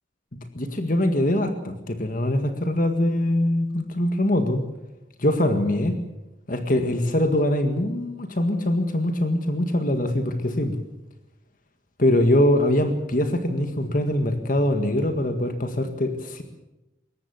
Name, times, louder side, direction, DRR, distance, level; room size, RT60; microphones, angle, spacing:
voice 1, 0.3-4.6 5.2-6.0 6.5-10.8 12.0-16.4, left 1 dB, 45° left, 7 dB, 1.8 m, -23 dB
22.5 x 18.5 x 7.1 m, 0.95 s
head